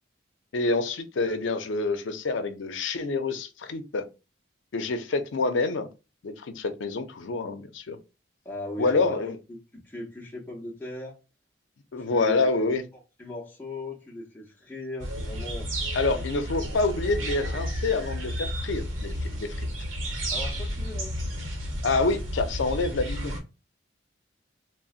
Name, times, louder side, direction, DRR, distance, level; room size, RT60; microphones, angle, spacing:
voice 1, 0.5-4.1 4.7-5.9 6.2-8.0 8.8-9.4 11.9-12.8 15.9-19.7 21.8-23.4, left 3 dB, 75° left, 0.5 m, -27 dB
voice 2, 8.4-9.3 9.7-11.2 12.0-12.6 13.2-15.7 20.3-21.2, left 1 dB, 10° left, 0.6 m, -38 dB
sound 1, 15.0-23.4, equal, 90° right, 0.9 m, -32 dB
3.8 x 2.1 x 2.3 m
head